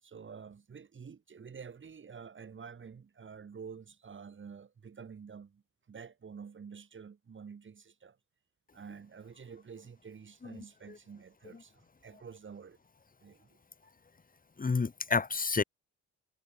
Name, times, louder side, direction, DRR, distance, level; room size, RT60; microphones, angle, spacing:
voice 1, 0.0-5.6 5.9-8.2 8.7-12.8 13.2-13.6, right 6 dB, 40° right, 3.9 m, -49 dB
voice 2, 10.4-11.0 11.5-11.6 14.6-15.6, left 4 dB, 30° left, 3.5 m, -31 dB
cardioid pair, 90°, 30 cm